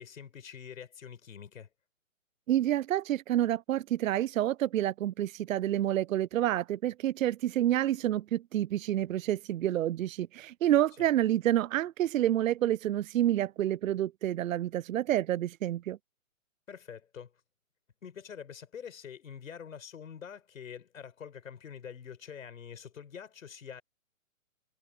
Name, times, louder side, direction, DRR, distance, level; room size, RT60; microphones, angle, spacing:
voice 1, 0.0-1.7 11.0-11.1 16.7-17.3 18.0-23.8, left 7 dB, 70° left, 5.0 m, -45 dB
voice 2, 2.5-16.0, right 12 dB, 75° right, 0.5 m, -28 dB
hypercardioid pair, 150°, 41 cm